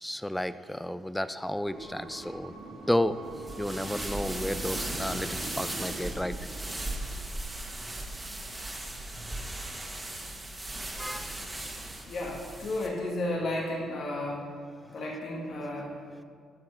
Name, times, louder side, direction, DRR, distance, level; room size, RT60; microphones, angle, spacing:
voice 1, 0.0-2.5 2.9-3.2 3.6-6.4 11.0-11.4, left 1 dB, 5° left, 14 dB, 0.4 m, -32 dB
sound 1, 1.6-7.0, right 2 dB, 85° right, 2.7 m, -43 dB
sound 2, 3.4-12.9, right 1 dB, 15° right, 1.5 m, -37 dB
voice 2, 12.1-14.5 14.9-15.9, left 1 dB, 65° left, -2 dB, 1.9 m, -33 dB
10.5 x 6.6 x 5.7 m, 2.1 s
cardioid pair, 90°, 0 cm